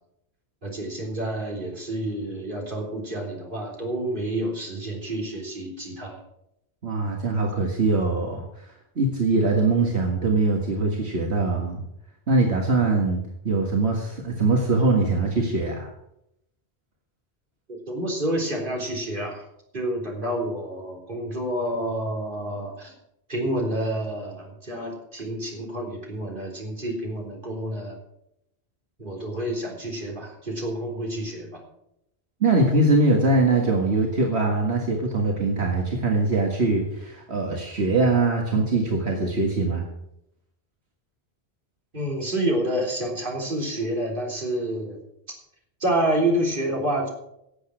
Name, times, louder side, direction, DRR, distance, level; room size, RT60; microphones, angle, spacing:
voice 1, 0.6-6.2 17.7-19.4 19.7-22.9 23.3-28.0 29.0-31.6 41.9-45.0 45.8-47.1, right 1 dB, 50° right, -1 dB, 3.9 m, -28 dB
voice 2, 6.8-8.7 9.0-11.8 12.3-15.9 32.4-39.8, right 3 dB, 80° right, 0 dB, 2.1 m, -22 dB
17.5 x 8.2 x 6.3 m, 0.81 s
omnidirectional pair, 1.1 m